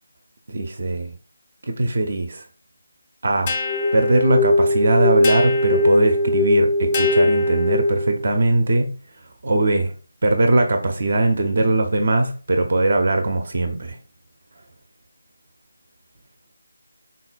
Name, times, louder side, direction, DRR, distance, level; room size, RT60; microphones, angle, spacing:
voice 1, 0.5-1.1 1.6-2.5 3.2-3.5 3.9-8.9 9.4-9.9 10.2-14.0, right 2 dB, 50° right, 0.4 m, -20 dB
sound 1, 3.5-8.2, left 2 dB, 25° left, 0.3 m, -20 dB
3.7 x 2.1 x 2.3 m
figure-of-eight pair, 160°, 0 cm